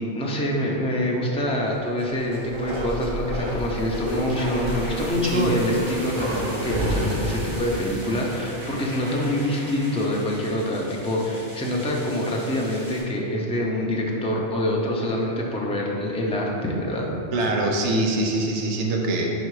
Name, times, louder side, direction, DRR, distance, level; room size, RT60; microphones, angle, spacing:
voice 1, 0.0-17.1, left 1 dB, 10° left, -2 dB, 0.4 m, -25 dB
Bark, 1.9-9.5 9.8-9.9, equal, 50° right, 1.0 m, -31 dB
sound 1, 3.3-13.0, equal, 20° right, 1.3 m, -41 dB
voice 2, 17.3-19.3, right 2 dB, 90° right, 1 dB, 1.0 m, -23 dB
4.9 x 4.2 x 4.7 m, 3.0 s
omnidirectional pair, 1.2 m